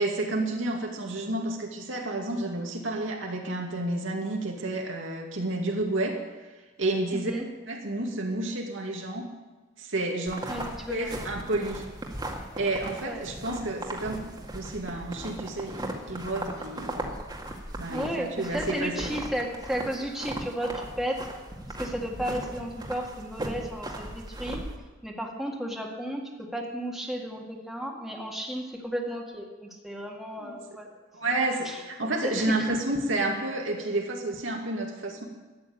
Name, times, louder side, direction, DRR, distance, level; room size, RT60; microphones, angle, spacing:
voice 1, 0.0-6.2 6.4-6.5 6.8-7.4 7.7-9.3 9.8-10.5 10.9-11.8 12.4-17.1 17.8-19.1 30.4-30.6 31.1-35.2, right 2 dB, 75° right, 1 dB, 2.4 m, -30 dB
voice 2, 7.1-7.4 10.5-11.1 13.0-13.2 17.9-21.3 21.8-24.7 25.0-30.9 31.6-32.8, equal, ahead, -1 dB, 2.0 m, -33 dB
sound 1, 10.3-24.8, right 1 dB, 20° right, 1.9 m, -38 dB
13.5 x 9.5 x 8.7 m, 1.2 s
head